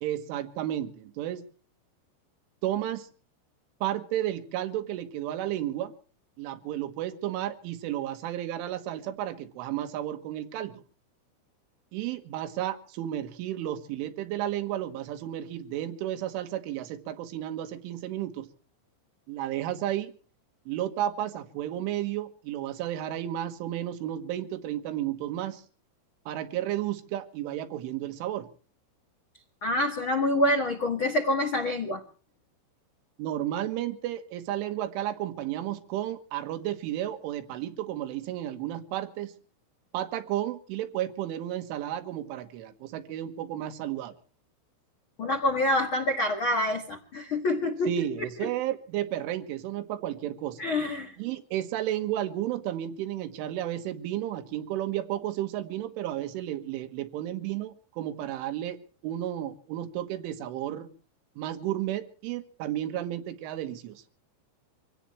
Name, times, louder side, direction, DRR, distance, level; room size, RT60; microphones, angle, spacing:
voice 1, 0.0-1.4 2.6-3.1 3.8-5.9 6.4-10.8 11.9-18.5 19.3-20.1 20.7-25.6 26.3-28.5 33.2-39.3 39.9-44.1 47.9-50.6 51.2-58.8 59.0-60.9 61.4-64.0, right 12 dB, 90° right, 8 dB, 3.8 m, -32 dB
voice 2, 29.6-32.0 45.2-47.9 50.6-51.1, left 1 dB, 85° left, 4 dB, 1.1 m, -26 dB
25.0 x 17.0 x 3.2 m, 0.40 s
omnidirectional pair, 5.4 m